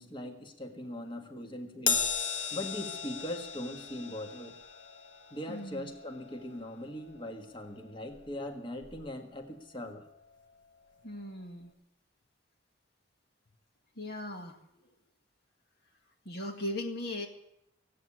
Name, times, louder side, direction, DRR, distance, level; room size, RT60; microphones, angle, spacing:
voice 1, 0.0-2.1 2.5-4.6 5.3-10.1, left 1 dB, 25° left, 4 dB, 1.6 m, -40 dB
Crash cymbal, 1.9-8.5 8.8-9.1 10.1-10.2, left 6 dB, 70° left, 1.5 m, -37 dB
voice 2, 5.5-5.9 11.0-11.7 14.0-14.6 16.3-17.3, left 1 dB, 55° left, 2 dB, 1.9 m, -38 dB
17.0 x 8.6 x 9.9 m, 0.80 s
head